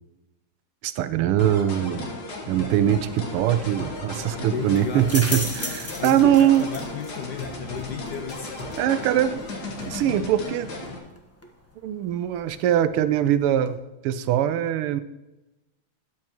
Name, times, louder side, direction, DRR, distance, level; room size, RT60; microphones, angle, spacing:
voice 1, 0.8-2.1 2.5-6.7 8.8-9.4 9.9-10.7 11.8-13.8 14.0-15.0, right 11 dB, 90° right, 13 dB, 1.5 m, -22 dB
sound 1, 1.4-11.0, left 2 dB, 50° left, 2.0 m, -35 dB
sound 2, 3.1-13.7, left 1 dB, 10° left, 0.6 m, -39 dB
voice 2, 4.3-5.1 6.0-8.5 8.8-9.1, left 7 dB, 70° left, 6 dB, 1.0 m, -34 dB
13.0 x 9.6 x 3.0 m, 1.0 s
omnidirectional pair, 2.4 m